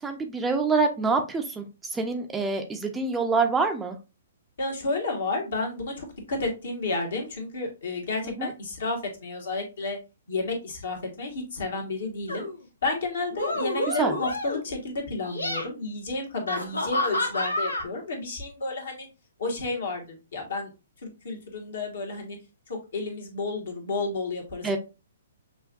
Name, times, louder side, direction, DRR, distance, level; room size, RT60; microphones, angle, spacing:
voice 1, 0.0-4.0 8.2-8.5 14.0-14.1 24.6-24.8, right 4 dB, 10° right, 4 dB, 0.5 m, -26 dB
voice 2, 4.6-10.0 10.3-12.5 12.8-19.1 19.4-20.7 21.0-22.4 22.7-24.8, left 3 dB, 60° left, 1 dB, 1.5 m, -31 dB
sound 1, 12.3-12.6 13.3-14.7 15.2-15.7 16.5-17.8, left 1 dB, 85° left, 0.9 m, -29 dB
5.8 x 2.5 x 2.5 m, 0.29 s
figure-of-eight pair, 125°, 0 cm